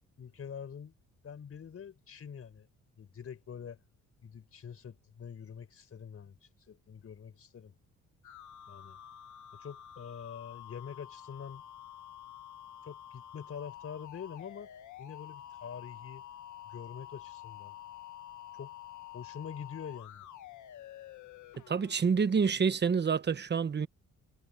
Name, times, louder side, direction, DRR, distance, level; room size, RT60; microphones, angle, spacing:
voice 1, 0.2-0.9 1.2-2.7 3.0-3.8 4.2-7.7 8.7-9.0 9.5-11.6 12.8-14.7 15.0-16.2 16.6-17.8 18.5-18.8 19.1-20.3, left 7 dB, 50° left, 4.8 m, -45 dB
sound 1, 8.2-22.0, left 12 dB, 75° left, 1.9 m, -49 dB
voice 2, 21.7-23.9, right 6 dB, 35° right, 1.2 m, -27 dB
cardioid pair, 90°, 30 cm